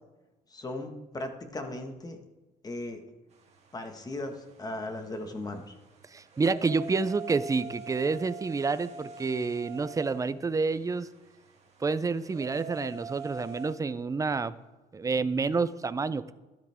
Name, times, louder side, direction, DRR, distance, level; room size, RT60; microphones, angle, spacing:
voice 1, 0.5-2.2 2.6-3.0 3.7-5.7, left 2 dB, 20° left, 5 dB, 1.6 m, -37 dB
sound 1, 3.3-13.7, right 4 dB, 40° right, 2.3 m, -45 dB
voice 2, 6.1-11.1 11.8-14.5 14.9-16.3, right 4 dB, 20° right, 14 dB, 0.5 m, -29 dB
12.5 x 12.5 x 3.6 m, 1.1 s
cardioid pair, 110°, 17 cm